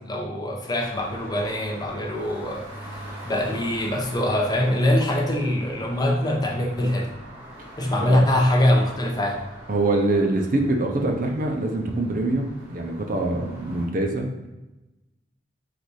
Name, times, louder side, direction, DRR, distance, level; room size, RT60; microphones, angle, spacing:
voice 1, 0.0-2.7 3.2-7.1 7.8-9.4, left 1 dB, 20° left, 0 dB, 0.6 m, -23 dB
sound 1, 0.8-13.9, right 1 dB, 10° right, 1.1 m, -43 dB
voice 2, 9.7-14.5, right 2 dB, 50° right, 2 dB, 0.6 m, -24 dB
4.1 x 2.6 x 4.6 m, 1.0 s
head